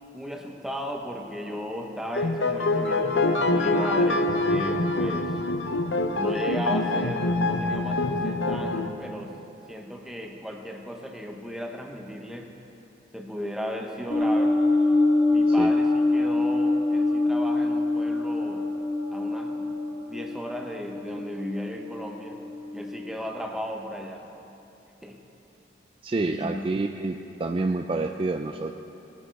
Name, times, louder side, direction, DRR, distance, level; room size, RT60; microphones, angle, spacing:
voice 1, 0.1-5.4 6.1-9.4 9.7-12.5 13.1-14.6 15.3-18.7 19.1-19.8 20.0-22.4 22.7-24.3 25.0-25.2 26.2-26.6, equal, ahead, 2 dB, 0.9 m, -36 dB
sound 1, 2.1-8.9, left 2 dB, 75° left, 0.8 m, -25 dB
sound 2, 14.1-23.1, left 2 dB, 45° left, 1.3 m, -25 dB
voice 2, 26.0-28.7, right 3 dB, 30° right, 5 dB, 0.3 m, -28 dB
19.5 x 10.0 x 4.6 m, 2.9 s
head